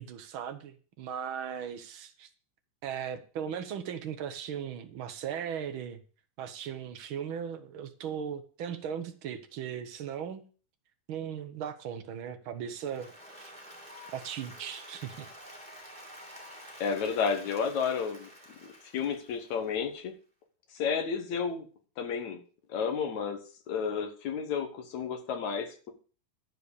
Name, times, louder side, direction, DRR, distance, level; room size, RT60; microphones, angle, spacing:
voice 1, 0.0-2.3 2.8-6.0 6.4-10.4 11.1-13.1 13.4-13.5 14.1-15.2, right 8 dB, 60° right, 8 dB, 1.4 m, -38 dB
Applause, 12.7-19.9, equal, ahead, 2.7 m, -49 dB
voice 2, 16.8-18.3 18.6-20.1 20.7-21.7 22.0-22.4 22.7-23.4 23.7-25.9, left 6 dB, 65° left, 5 dB, 2.6 m, -31 dB
12.0 x 4.9 x 8.2 m, 0.39 s
omnidirectional pair, 3.6 m